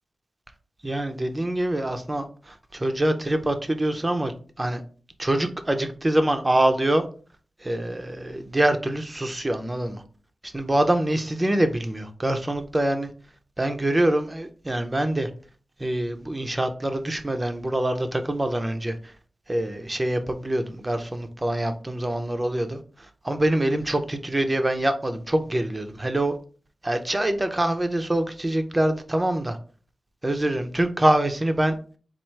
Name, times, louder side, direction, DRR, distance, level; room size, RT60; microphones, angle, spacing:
voice 1, 0.8-4.8 5.2-7.0 7.6-10.0 10.5-13.1 13.6-15.3 15.8-19.1 19.5-22.8 23.2-26.3 26.8-29.6 30.2-31.7, right 1 dB, 20° right, 0.5 m, -25 dB
4.4 x 2.4 x 4.5 m
wide cardioid pair, 135°, 0 cm